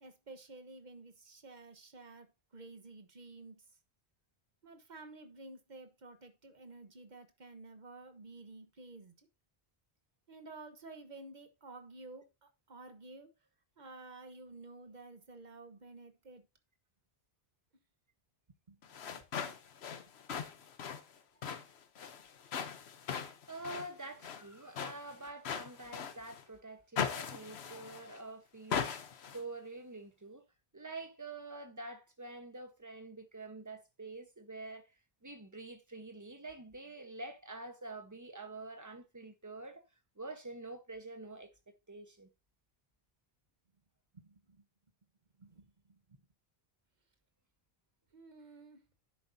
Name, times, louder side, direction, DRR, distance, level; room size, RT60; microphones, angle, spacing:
voice 1, 0.0-2.3 2.5-3.6 4.6-9.1 10.3-13.3 13.8-16.4 18.7-19.5 44.1-44.6 45.4-45.6 45.9-46.2 48.1-48.8, right 3 dB, 45° right, 1.3 m, -52 dB
sound 1, 18.8-26.4 27.0-28.2 28.7-29.4, left 7 dB, 85° left, 1.1 m, -40 dB
voice 2, 23.5-28.8 29.3-30.4 30.7-34.9 35.2-39.8 40.2-41.5 41.9-42.3, right 2 dB, 20° right, 1.1 m, -47 dB
10.0 x 7.8 x 2.7 m
omnidirectional pair, 1.1 m